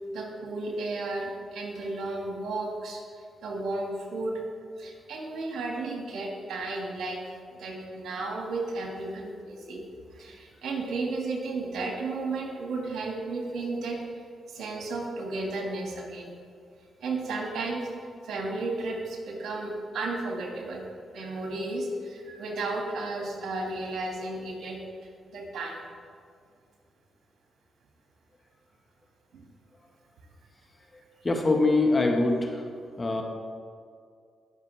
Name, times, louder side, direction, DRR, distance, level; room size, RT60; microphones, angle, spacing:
voice 1, 0.1-4.4 4.8-9.8 10.1-14.0 14.5-16.4 17.0-17.9 18.2-20.8 21.1-24.8 25.3-25.9 29.3-29.5, right 2 dB, 70° right, 0 dB, 2.2 m, -33 dB
voice 2, 30.9-32.7 33.0-33.2, left 2 dB, 30° left, 2 dB, 1.7 m, -24 dB
19.5 x 6.6 x 3.5 m, 2.2 s
hypercardioid pair, 45°, 0 cm